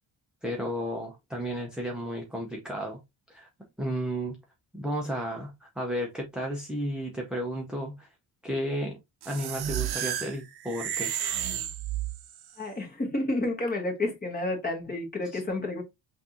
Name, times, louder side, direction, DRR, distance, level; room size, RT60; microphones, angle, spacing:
voice 1, 0.4-3.0 3.3-3.5 3.8-4.4 4.7-8.1 8.4-9.0 9.3-11.1 15.2-15.4, equal, ahead, 0.6 m, -33 dB
sound 1, 9.2-12.5, right 11 dB, 55° right, 0.7 m, -32 dB
voice 2, 12.6-15.8, left 2 dB, 20° left, 1.2 m, -30 dB
5.7 x 2.6 x 2.9 m
wide cardioid pair, 175°, 46 cm